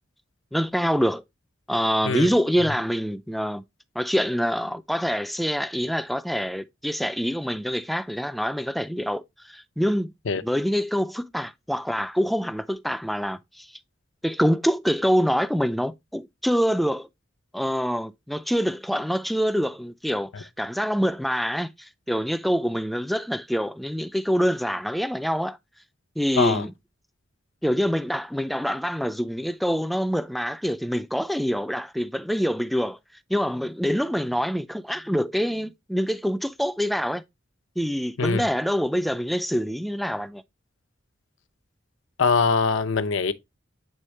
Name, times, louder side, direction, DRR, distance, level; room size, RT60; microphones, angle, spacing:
voice 1, 0.5-1.2 1.7-3.6 4.0-10.1 10.4-13.7 14.2-17.1 17.5-25.6 26.2-26.7 27.6-33.0 33.3-37.2 37.8-40.4, equal, ahead, 0.3 m, -25 dB
voice 2, 42.2-43.3, left 4 dB, 80° left, 0.7 m, -22 dB
9.1 x 3.5 x 3.1 m
head